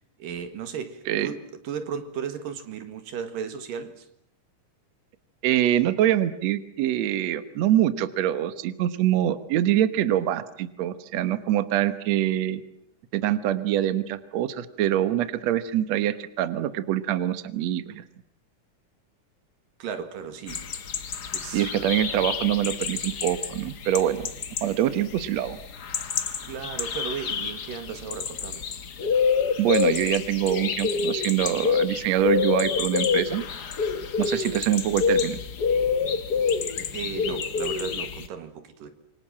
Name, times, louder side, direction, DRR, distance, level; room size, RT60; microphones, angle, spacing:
voice 1, 0.2-4.1 19.8-20.7 21.3-21.9 26.4-28.7 36.9-38.9, right 7 dB, 90° right, 9 dB, 3.6 m, -35 dB
voice 2, 5.4-12.6 13.1-18.0 21.5-24.3 24.6-25.6 29.6-33.4 34.2-35.4, right 12 dB, 65° right, 12 dB, 2.2 m, -24 dB
sound 1, 20.5-38.3, left 6 dB, 55° left, 1.1 m, -28 dB
27.5 x 24.5 x 7.5 m, 0.70 s
omnidirectional pair, 3.8 m